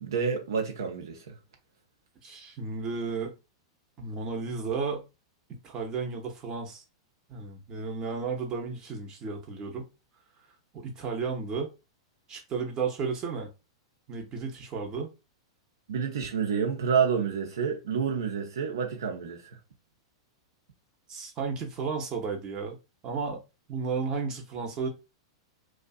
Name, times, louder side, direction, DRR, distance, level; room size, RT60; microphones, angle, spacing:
voice 1, 0.0-1.3 15.9-19.6, right 6 dB, 65° right, 0.7 m, -29 dB
voice 2, 2.2-3.3 4.0-5.0 5.5-6.8 7.3-9.9 10.7-11.7 12.3-13.5 14.1-15.1 21.1-22.8 23.0-23.4 23.7-24.9, right 5 dB, 30° right, 0.8 m, -33 dB
2.6 x 2.3 x 2.3 m
figure-of-eight pair, 95°, 2 cm